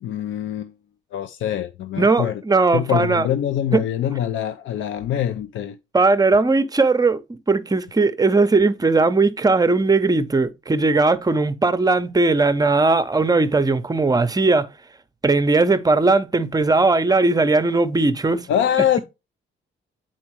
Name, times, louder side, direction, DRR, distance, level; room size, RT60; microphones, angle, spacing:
voice 1, 0.0-0.7 1.1-2.4 2.7-5.8 18.5-19.0, left 10 dB, 75° left, 0.5 m, -24 dB
voice 2, 2.0-3.3 3.7-3.9 5.9-14.7 15.2-18.5, right 3 dB, 20° right, 0.6 m, -18 dB
8.5 x 4.4 x 3.1 m
cardioid pair, 90°, 20 cm